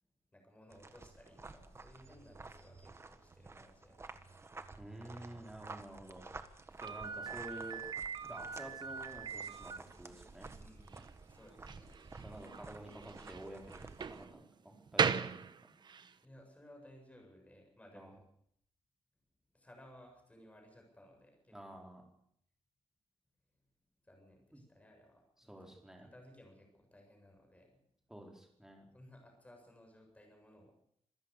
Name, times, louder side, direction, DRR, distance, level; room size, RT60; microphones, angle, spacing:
voice 1, 0.3-4.4 10.6-12.0 16.2-18.3 19.5-21.9 24.0-27.8 28.9-30.7, left 1 dB, 10° left, 2 dB, 7.6 m, -60 dB
sound 1, 0.7-14.2, right 3 dB, 25° right, 1.5 m, -52 dB
voice 2, 4.8-6.3 6.8-7.8 8.2-10.5 12.2-15.5 17.9-18.1 21.5-22.0 24.5-24.6 25.5-26.1 28.1-28.9, right 1 dB, 5° right, 1 dB, 4.6 m, -50 dB
Slam, 6.8-16.1, right 6 dB, 40° right, 1.0 m, -40 dB
26.5 x 15.0 x 6.9 m, 0.69 s
wide cardioid pair, 160°, 11 cm